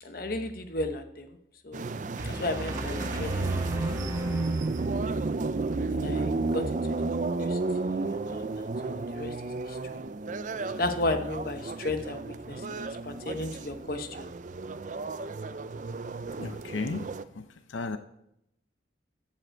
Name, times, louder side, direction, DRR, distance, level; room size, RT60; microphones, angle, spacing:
voice 1, 0.0-1.4 1.6-1.9 2.2-3.8 5.9-6.6 7.0-9.3 9.7-10.0 10.8-14.3, left 2 dB, 50° left, 1.1 m, -34 dB
sound 1, 1.7-17.2, right 3 dB, 40° right, 0.4 m, -32 dB
sound 2, 2.2-5.4, equal, 15° right, 1.5 m, -37 dB
voice 2, 16.4-17.1 17.3-18.0, left 3 dB, 90° left, 0.7 m, -34 dB
14.0 x 7.5 x 4.5 m
head